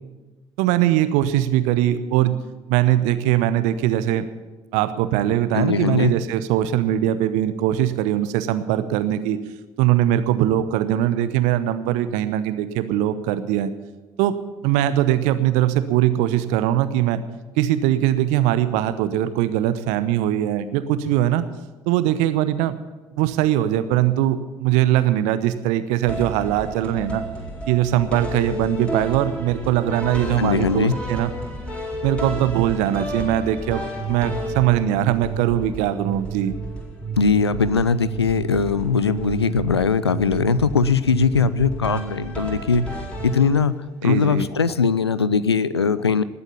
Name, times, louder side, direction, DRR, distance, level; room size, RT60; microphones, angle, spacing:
voice 1, 0.6-2.4 2.7-4.3 4.7-9.4 9.8-13.7 14.2-14.3 14.6-17.2 17.6-21.4 21.9-22.7 23.1-27.2 27.7-31.3 32.0-36.6 44.0-44.5, right 12 dB, 65° right, 12 dB, 0.9 m, -21 dB
voice 2, 5.5-6.1 30.4-30.9 37.2-42.9 43.2-43.8 44.0-46.2, left 5 dB, 90° left, 17 dB, 0.4 m, -20 dB
sound 1, 26.1-43.9, right 2 dB, 10° left, 4.4 m, -31 dB
19.0 x 8.3 x 6.9 m, 1.2 s
figure-of-eight pair, 50°, 13 cm